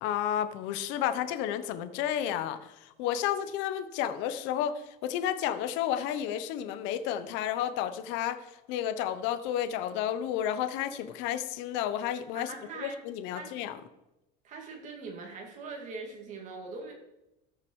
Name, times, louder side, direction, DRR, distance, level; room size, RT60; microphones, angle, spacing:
voice 1, 0.0-8.4 8.7-12.5 12.8-13.8, left 10 dB, 65° left, 11 dB, 0.9 m, -31 dB
voice 2, 12.3-13.0 13.3-13.6 14.4-16.9, right 4 dB, 35° right, 1 dB, 2.5 m, -42 dB
14.0 x 6.7 x 4.7 m, 0.93 s
cardioid pair, 170°, 20 cm